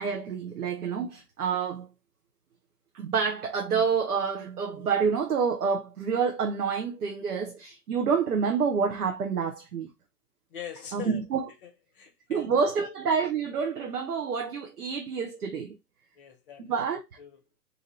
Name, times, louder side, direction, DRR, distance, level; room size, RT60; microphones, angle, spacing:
voice 1, 0.0-1.9 2.9-9.9 10.9-11.4 12.3-15.8 16.6-17.0, right 6 dB, 70° right, 0.9 m, -28 dB
voice 2, 10.5-13.0 16.1-16.8 17.2-17.4, left 8 dB, 35° left, 0.7 m, -43 dB
2.7 x 2.6 x 4.2 m
figure-of-eight pair, 125°, 46 cm